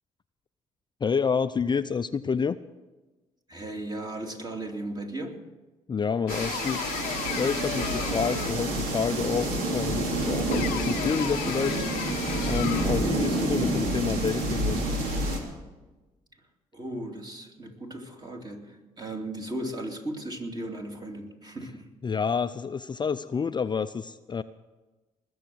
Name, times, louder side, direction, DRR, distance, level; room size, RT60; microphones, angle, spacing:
voice 1, 1.0-2.6 5.9-6.9 7.4-11.9 12.5-14.8 22.0-24.4, left 6 dB, 30° left, 11 dB, 0.5 m, -28 dB
voice 2, 3.5-5.4 16.7-21.9, right 1 dB, 25° right, 2 dB, 2.8 m, -36 dB
sound 1, 6.3-8.8 10.5-13.1, left 15 dB, 85° left, 0.7 m, -35 dB
sound 2, 6.3-15.4, right 1 dB, 80° right, 2.7 m, -28 dB
20.0 x 7.1 x 7.8 m, 1.2 s
supercardioid pair, 60°, 15 cm